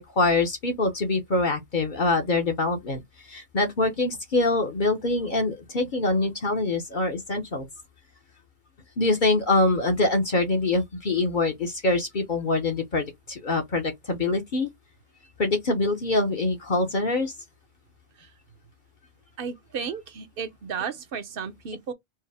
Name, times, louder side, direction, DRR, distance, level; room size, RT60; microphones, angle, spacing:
voice 1, 0.0-7.7 9.0-14.7 15.4-17.3, left 2 dB, 50° left, 0.9 m, -24 dB
voice 2, 19.4-21.9, right 6 dB, 60° right, 0.9 m, -34 dB
4.6 x 2.0 x 3.4 m
omnidirectional pair, 1.1 m